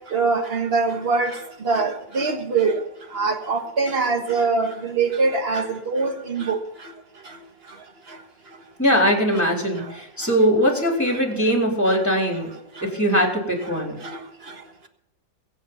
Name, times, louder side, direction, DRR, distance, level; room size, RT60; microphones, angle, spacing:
voice 1, 0.1-1.4 1.7-2.8 3.1-6.6, right 4 dB, 35° right, 1.8 m, -23 dB
voice 2, 8.8-12.5 12.8-14.0, equal, 10° left, 4.0 m, -21 dB
22.5 x 8.1 x 5.7 m
omnidirectional pair, 1.8 m